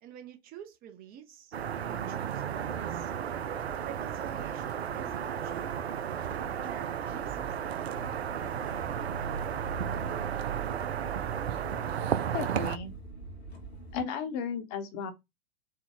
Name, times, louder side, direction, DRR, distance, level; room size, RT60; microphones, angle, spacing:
voice 1, 0.0-1.5 1.9-3.1 3.8-5.8 6.6-7.8, right 10 dB, 30° right, 0.6 m, -48 dB
sound 1, 1.5-12.8, right 9 dB, 80° right, 0.5 m, -34 dB
Motor vehicle (road) / Engine starting, 1.6-14.0, right 4 dB, 80° left, 1.3 m, -44 dB
voice 2, 12.3-12.9 13.9-15.1, left 6 dB, 40° left, 0.9 m, -34 dB
4.4 x 2.2 x 3.6 m
figure-of-eight pair, 95°, 31 cm